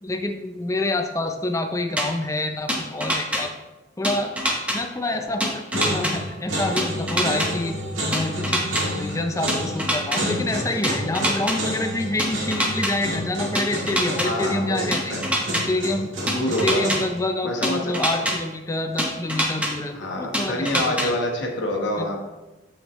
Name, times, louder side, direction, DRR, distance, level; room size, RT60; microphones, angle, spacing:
voice 1, 0.0-3.5 4.0-4.4 4.7-7.7 8.0-15.2 15.5-16.1 16.5-21.1 22.0-22.1, left 2 dB, 15° left, 5 dB, 0.5 m, -27 dB
sound 1, 2.0-2.1 2.7-3.4 4.0-4.8 5.4-6.1 6.8-7.5 8.1-8.8 9.5-10.2 10.8-11.6 12.2-12.9 13.6-14.3 14.9-15.6 16.3-17.0 17.6-18.3 19.0-19.7 20.3-21.1, equal, 5° right, 0.9 m, -23 dB
sound 2, 5.0-5.4 5.7-17.2, equal, 90° right, 1.7 m, -30 dB
voice 2, 14.2-15.2 16.2-16.8 17.4-18.3 19.9-22.3, left 1 dB, 60° left, 1 dB, 1.2 m, -27 dB
7.2 x 5.9 x 3.1 m, 1.1 s
head